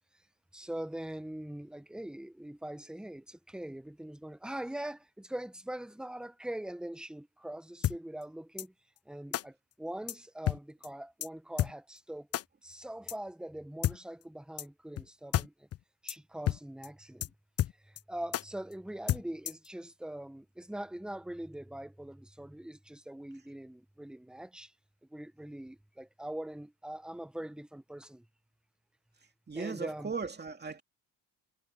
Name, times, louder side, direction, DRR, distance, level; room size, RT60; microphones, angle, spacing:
voice 1, 0.5-8.7 9.0-12.3 12.6-15.7 16.0-17.3 17.8-24.7 25.1-28.3 29.5-30.1, right 1 dB, ahead, 1.1 m, -42 dB
sound 1, 7.8-8.0 8.6-8.7 9.3-9.4 10.1-10.2 10.5-10.6 10.8-10.9 11.2-11.3 11.6-11.7 12.3-12.4 13.1-13.2 13.8-14.0 14.6-14.7 15.0-15.1 15.3-15.5 15.7-15.8 16.1-16.2 16.5-16.6 16.8-16.9 17.2-17.3 17.6-18.0 18.3-18.4 19.1-19.7, left 12 dB, 40° left, 0.4 m, -30 dB
voice 2, 29.5-30.8, right 5 dB, 25° right, 2.6 m, -37 dB
cardioid pair, 90°, 37 cm